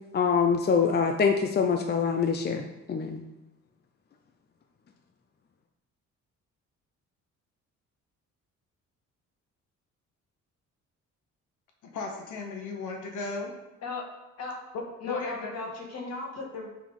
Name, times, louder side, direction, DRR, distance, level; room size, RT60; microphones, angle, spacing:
voice 1, 0.1-2.6 2.9-3.2, left 6 dB, 35° left, 5 dB, 0.6 m, -24 dB
voice 2, 11.8-13.5 14.7-15.5, left 3 dB, 80° left, 2 dB, 1.1 m, -35 dB
voice 3, 15.0-16.7, left 3 dB, 55° left, -1 dB, 2.0 m, -36 dB
7.4 x 3.8 x 5.4 m, 1.0 s
cardioid pair, 90°, 30 cm